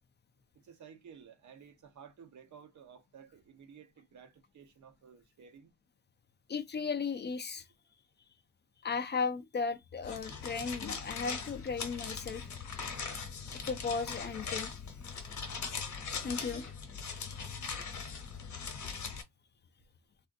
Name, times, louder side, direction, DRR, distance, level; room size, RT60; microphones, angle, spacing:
voice 1, 0.5-5.7 16.3-16.7, right 7 dB, 75° right, 0.8 m, -55 dB
voice 2, 6.5-7.7 8.8-12.5 13.7-14.7 16.2-16.6, left 5 dB, 35° left, 0.4 m, -35 dB
sound 1, 10.0-19.2, left 5 dB, 65° left, 1.0 m, -40 dB
3.5 x 2.5 x 2.5 m
wide cardioid pair, 175°, 30 cm